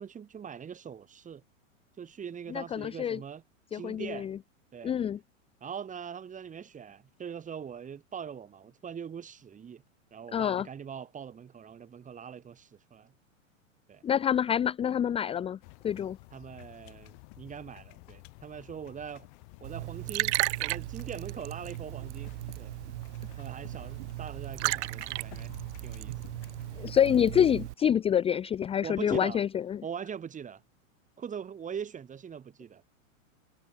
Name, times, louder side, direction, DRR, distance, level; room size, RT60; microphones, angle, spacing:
voice 1, 0.0-1.4 2.0-3.4 3.7-4.3 4.7-4.9 5.6-9.8 10.1-13.1 13.9-14.0 16.3-19.3 19.6-22.8 23.4-25.6 25.8-26.4 28.8-29.4 29.8-30.6 31.2-32.9, right 7 dB, 20° right, 3.9 m, -42 dB
voice 2, 2.5-3.2 3.7-4.4 4.8-5.2 10.3-10.7 14.0-15.6 15.8-16.2 26.8-29.8, left 9 dB, 15° left, 0.7 m, -27 dB
sound 1, 15.6-26.9, left 38 dB, 50° left, 5.7 m, -52 dB
Liquid, 19.6-27.7, right 19 dB, 60° right, 3.1 m, -35 dB
hypercardioid pair, 125°, 40 cm